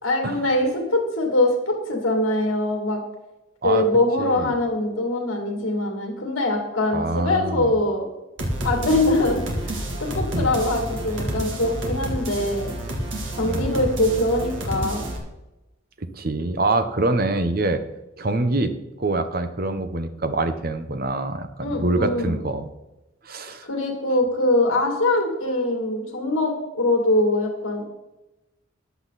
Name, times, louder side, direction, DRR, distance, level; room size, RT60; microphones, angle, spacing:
voice 1, 0.0-3.0 3.6-8.0 8.6-9.4 9.7-12.7 13.3-15.1 21.6-22.4 23.6-27.8, left 1 dB, 70° left, 2 dB, 2.6 m, -23 dB
voice 2, 4.2-4.5 6.9-7.8 10.3-10.5 13.4-13.8 16.1-17.8 18.2-18.7 19.0-22.7 23.2-23.7, right 2 dB, 45° right, 9 dB, 1.0 m, -25 dB
sound 1, 8.4-15.2, right 1 dB, 65° right, 2.5 m, -29 dB
14.0 x 9.6 x 4.2 m, 1.0 s
head